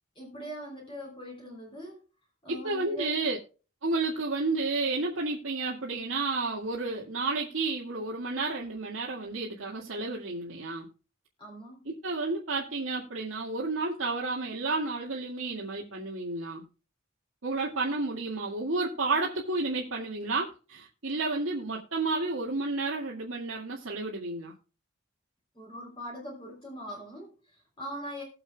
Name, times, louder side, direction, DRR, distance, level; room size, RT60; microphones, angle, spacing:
voice 1, 0.1-2.0 2.4-3.2 11.4-11.8 25.5-28.2, equal, 25° left, 3.3 m, -41 dB
voice 2, 2.5-3.4 3.8-10.9 11.9-16.7 17.4-24.5, right 3 dB, 80° right, 2.0 m, -31 dB
20.0 x 7.0 x 2.3 m
head